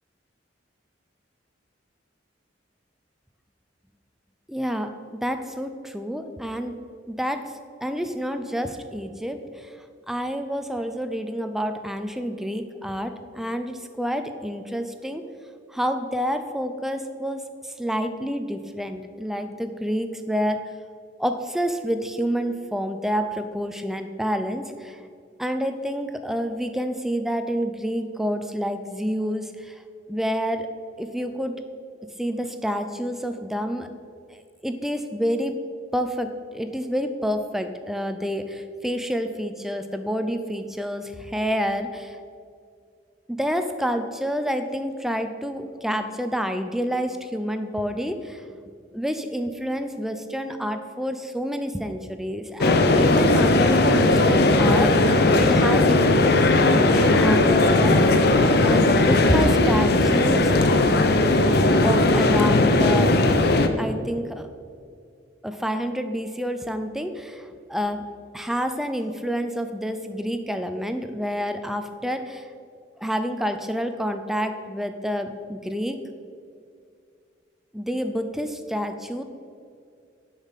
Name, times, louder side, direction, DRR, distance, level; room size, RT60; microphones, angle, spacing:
voice 1, 4.5-6.8 7.1-7.5 7.8-9.8 10.1-15.2 15.7-20.7 21.2-25.0 25.4-29.8 30.1-30.7 31.0-31.6 32.2-33.9 34.6-35.6 35.9-42.2 43.3-48.4 48.9-58.3 58.6-60.5 61.8-63.4 63.8-64.5 65.4-68.0 68.3-72.5 73.0-76.0 77.7-79.2, equal, ahead, 8 dB, 0.4 m, -28 dB
Crowd Large Large Venue Tradeshow, 52.6-63.7, left 2 dB, 55° left, 0.6 m, -18 dB
7.1 x 5.6 x 7.2 m, 2.3 s
head